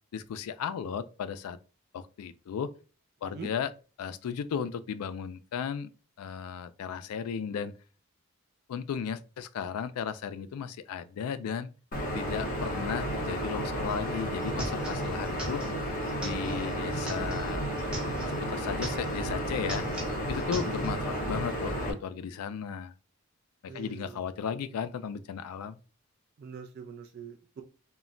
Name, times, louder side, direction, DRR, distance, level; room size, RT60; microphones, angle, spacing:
voice 1, 0.1-1.6 1.9-2.7 3.2-3.7 4.0-5.9 6.2-7.7 8.7-11.7 12.1-15.6 16.2-17.6 18.3-19.8 20.3-22.9 23.6-25.8, left 7 dB, 85° left, 0.3 m, -35 dB
sound 1, 11.9-21.9, equal, 40° left, 0.7 m, -32 dB
sound 2, 13.9-14.0 14.2-18.4 18.7-19.3 19.6-21.0, right 1 dB, 5° right, 0.8 m, -41 dB
voice 2, 20.6-20.9 23.7-24.2 26.4-27.6, right 5 dB, 45° right, 0.3 m, -43 dB
2.1 x 2.1 x 3.7 m
head